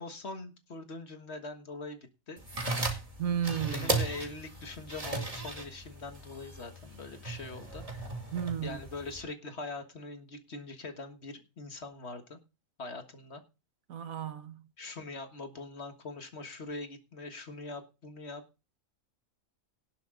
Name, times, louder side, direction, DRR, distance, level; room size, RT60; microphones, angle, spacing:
voice 1, 0.0-2.4 3.7-7.8 8.6-12.4 12.8-13.4 14.8-18.4, left 3 dB, 50° left, 1.8 m, -42 dB
sound 1, 2.4-9.2, right 3 dB, 25° right, 2.3 m, -36 dB
voice 2, 3.2-3.9 8.3-8.8 13.9-14.6, right 8 dB, 85° right, 1.5 m, -33 dB
18.0 x 6.9 x 3.8 m
omnidirectional pair, 1.4 m